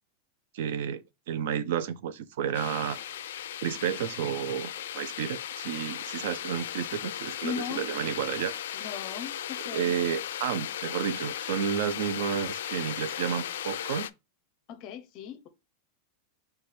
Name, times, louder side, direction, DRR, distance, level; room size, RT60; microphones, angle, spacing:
voice 1, 0.5-3.0 3.6-8.5 9.7-14.1, right 8 dB, 55° right, 0.4 m, -31 dB
sound 1, 2.5-14.1, left 11 dB, 90° left, 0.3 m, -36 dB
sound 2, 2.9-3.4 3.9-4.3 4.8-5.2 5.7-6.2 7.3-7.7 8.5-9.0, right 1 dB, 10° right, 0.8 m, -56 dB
voice 2, 7.4-7.9 8.7-10.0 14.7-15.5, left 8 dB, 30° left, 0.5 m, -38 dB
4.7 x 2.3 x 4.1 m
supercardioid pair, 180°, 0 cm